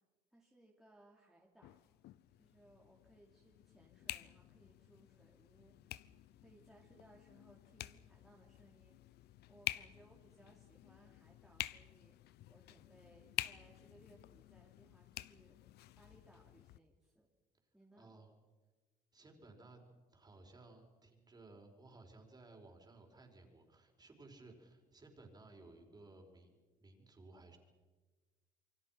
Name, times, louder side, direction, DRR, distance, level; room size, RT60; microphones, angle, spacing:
voice 1, 0.3-1.8 2.4-5.9 6.4-9.0 9.5-12.1 12.5-15.6 16.0-17.3 17.7-18.1, right 1 dB, ahead, -3 dB, 3.3 m, -65 dB
sound 1, 1.6-16.8, left 15 dB, 75° left, 0.8 m, -49 dB
voice 2, 17.9-18.3 19.1-19.8 20.1-27.6, right 2 dB, 25° right, 3 dB, 5.0 m, -59 dB
28.0 x 23.5 x 5.9 m, 1.3 s
cardioid pair, 110°, 17 cm